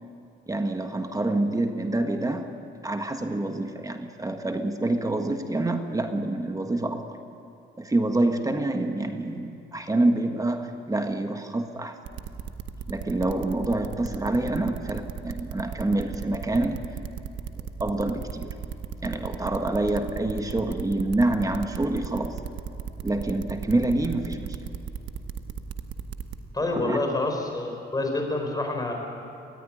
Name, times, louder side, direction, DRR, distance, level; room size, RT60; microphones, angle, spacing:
voice 1, 0.5-2.5 2.8-7.2 7.8-12.0 12.9-16.8 17.6-18.5 19.0-22.4 23.0-24.6 26.8-27.0, right 2 dB, 15° right, 6 dB, 1.5 m, -27 dB
sound 1, 12.1-26.4, right 8 dB, 75° right, 1.2 m, -35 dB
voice 2, 26.5-28.9, left 2 dB, 20° left, 2 dB, 4.8 m, -27 dB
19.5 x 14.0 x 9.8 m, 2.9 s
cardioid pair, 90°, 20 cm